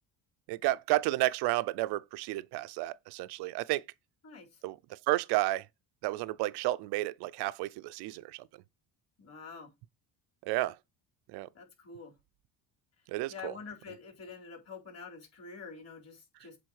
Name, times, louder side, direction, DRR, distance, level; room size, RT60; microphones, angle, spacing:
voice 1, 0.5-3.8 4.6-5.7 6.0-8.4 10.4-10.8 11.3-11.5 13.1-13.5, right 18 dB, 75° right, 0.6 m, -31 dB
voice 2, 4.2-4.6 9.2-9.7 11.5-12.1 13.3-16.6, left 5 dB, 40° left, 4.1 m, -47 dB
7.9 x 3.8 x 6.3 m
cardioid pair, 125°, 40 cm